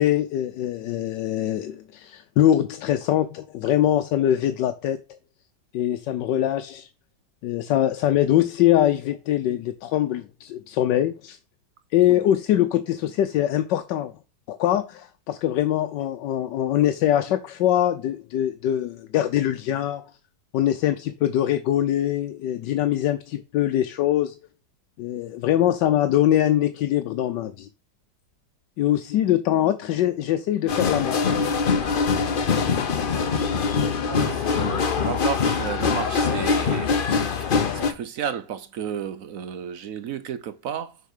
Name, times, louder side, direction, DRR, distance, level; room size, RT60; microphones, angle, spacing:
voice 1, 0.0-5.0 5.7-6.9 7.4-11.4 11.9-14.1 14.5-20.0 20.5-24.3 25.0-27.7 28.8-31.4, left 12 dB, 90° left, 1.3 m, -23 dB
sound 1, 30.7-37.9, left 5 dB, 45° left, 0.7 m, -23 dB
voice 2, 34.0-37.0 37.3-41.0, right 8 dB, 65° right, 0.9 m, -33 dB
6.8 x 4.5 x 6.5 m
omnidirectional pair, 1.8 m